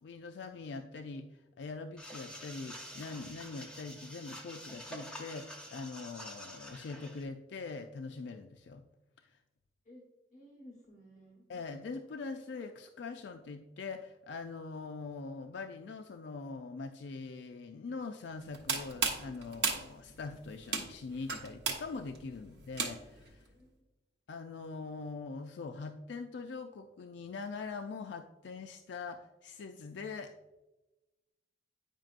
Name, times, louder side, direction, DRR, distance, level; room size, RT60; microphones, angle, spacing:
voice 1, 0.0-8.8 9.2-9.3 11.5-23.5 24.3-30.3, left 4 dB, 80° left, 6 dB, 0.4 m, -43 dB
sound 1, 2.0-7.2, equal, 5° left, 0.6 m, -47 dB
voice 2, 10.3-11.4 23.5-23.7, equal, 40° left, -4 dB, 1.1 m, -55 dB
sound 2, 18.4-23.3, right 5 dB, 80° right, 0.9 m, -36 dB
9.0 x 5.2 x 2.4 m, 1.1 s
head